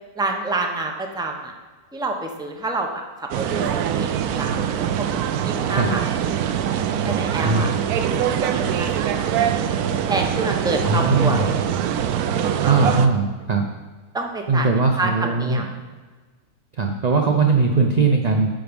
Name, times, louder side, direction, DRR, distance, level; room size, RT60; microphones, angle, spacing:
voice 1, 0.2-1.5 1.9-5.1 5.4-6.0 6.4-6.6 7.0-7.7 8.0-9.6 10.1-11.4 12.4-13.0 14.1-14.7 15.0-15.8, right 2 dB, 5° right, 2 dB, 0.6 m, -28 dB
sound 1, 3.3-13.1, right 9 dB, 80° right, 1.1 m, -23 dB
voice 2, 10.8-11.5 12.6-13.7 14.5-15.6 16.8-18.5, right 4 dB, 50° right, 3 dB, 0.5 m, -19 dB
9.1 x 6.0 x 5.2 m, 1.4 s
omnidirectional pair, 1.6 m